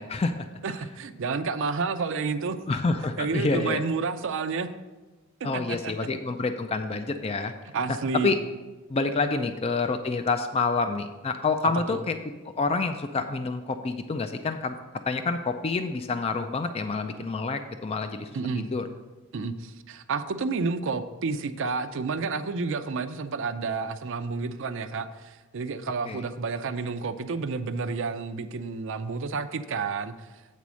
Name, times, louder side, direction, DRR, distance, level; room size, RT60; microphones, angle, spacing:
voice 1, 0.0-0.5 2.7-3.8 5.4-7.5 8.2-8.4 8.9-12.2 12.5-14.8 15.1-18.3 18.6-18.9 26.0-26.2, left 3 dB, 30° left, 8 dB, 0.3 m, -28 dB
voice 2, 0.6-2.6 3.2-4.7 5.5-6.1 7.7-8.3 11.9-12.0 18.3-18.7 19.3-30.1, right 4 dB, 60° right, 9 dB, 0.5 m, -30 dB
8.4 x 4.1 x 6.1 m, 1.2 s
head